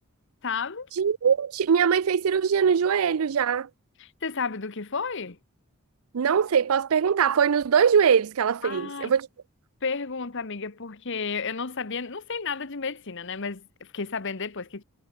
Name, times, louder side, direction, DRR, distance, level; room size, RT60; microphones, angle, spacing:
voice 1, 0.4-0.9 4.0-5.4 8.6-9.1 9.8-14.8, left 5 dB, 60° left, 1.2 m, -32 dB
voice 2, 1.0-3.7 6.1-9.3, right 7 dB, 75° right, 0.5 m, -22 dB
head